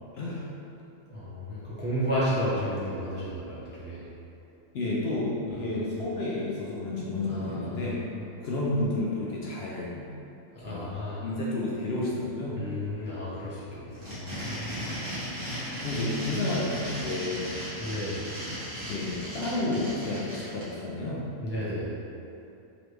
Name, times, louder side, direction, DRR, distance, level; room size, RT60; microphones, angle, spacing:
voice 1, 0.1-0.5 4.7-8.0 8.4-10.1 10.6-10.9 11.2-12.6 15.8-17.6 18.8-21.3, left 2 dB, 60° left, -5 dB, 0.7 m, -31 dB
voice 2, 1.1-4.1 5.5-5.8 7.2-7.9 10.5-11.3 12.6-14.8 17.8-18.2 21.4-22.0, equal, 15° right, -9 dB, 0.4 m, -33 dB
sound 1, 13.9-20.6, equal, 45° right, 1.6 m, -36 dB
3.9 x 3.2 x 3.2 m, 2.7 s
omnidirectional pair, 1.4 m